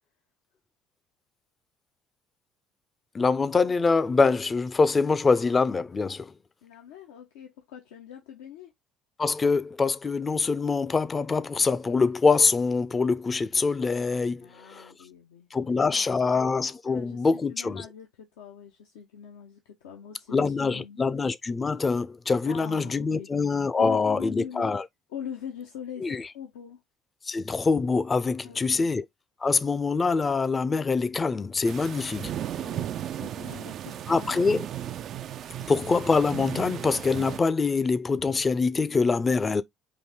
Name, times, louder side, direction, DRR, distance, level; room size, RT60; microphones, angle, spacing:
voice 1, 3.1-6.3 9.2-14.8 15.5-17.8 20.3-24.8 26.0-26.2 27.3-29.0 29.4-32.3 34.1-34.6 35.7-39.6, left 4 dB, 30° left, 0.5 m, -24 dB
voice 2, 6.6-8.7 14.4-16.4 16.9-21.0 22.5-23.3 23.8-24.7 25.1-26.8 28.4-28.9 32.6-34.5, left 8 dB, 80° left, 0.7 m, -42 dB
sound 1, 31.6-37.4, right 11 dB, 55° right, 0.3 m, -35 dB
4.5 x 2.7 x 3.5 m
hypercardioid pair, 65°, 0 cm